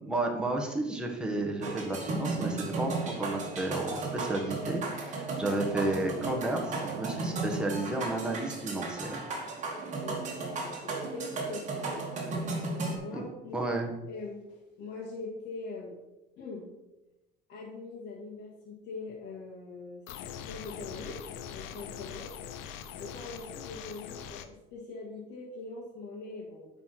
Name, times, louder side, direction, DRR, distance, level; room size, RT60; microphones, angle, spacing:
voice 1, 0.0-9.2 13.1-13.2 13.5-13.9, right 2 dB, 5° right, 0 dB, 1.3 m, -32 dB
sound 1, 1.6-13.0, right 3 dB, 40° right, 2.1 m, -35 dB
voice 2, 10.0-13.7 14.0-16.0 16.4-16.7 17.5-20.0 20.4-22.3 23.0-26.7, left 3 dB, 65° left, -5 dB, 2.0 m, -43 dB
sound 2, 20.1-24.5, left 8 dB, 90° left, 0.7 m, -42 dB
9.7 x 4.1 x 5.8 m, 0.99 s
cardioid pair, 145°, 20 cm